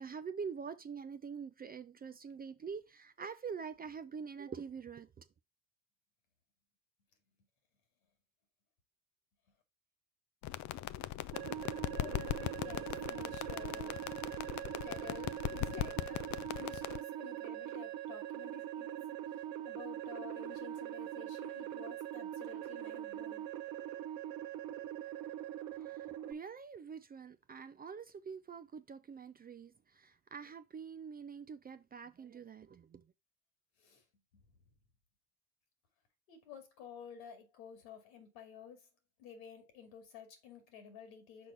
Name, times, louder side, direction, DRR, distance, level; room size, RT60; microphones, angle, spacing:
voice 1, 0.0-5.2 26.3-33.0, right 6 dB, 20° right, 0.5 m, -45 dB
sound 1, 10.4-17.0, left 14 dB, 45° left, 0.5 m, -40 dB
sound 2, 11.3-26.3, right 12 dB, 60° right, 0.9 m, -42 dB
voice 2, 12.0-14.0 14.8-16.2 16.6-19.0 19.6-23.5 33.8-34.0 36.3-38.8 39.2-41.5, left 7 dB, 75° left, 2.2 m, -52 dB
6.1 x 4.5 x 4.0 m
hypercardioid pair, 65°, 42 cm